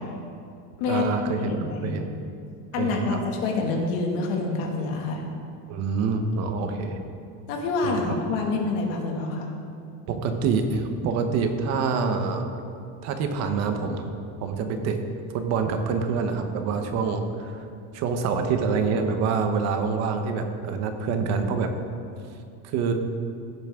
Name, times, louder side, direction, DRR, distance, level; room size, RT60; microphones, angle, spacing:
voice 1, 0.9-1.6 1.8-2.1 2.8-3.2 5.7-7.0 7.8-8.3 10.1-12.5 13.0-14.1 14.4-15.0 15.3-17.7 17.9-21.7 22.6-22.9, right 5 dB, 40° right, 6 dB, 0.9 m, -26 dB
voice 2, 1.4-1.9 2.7-5.2 6.6-6.8 7.5-9.5, left 3 dB, 70° left, 1 dB, 2.0 m, -27 dB
16.0 x 8.8 x 3.6 m, 2.5 s
cardioid pair, 180°, 41 cm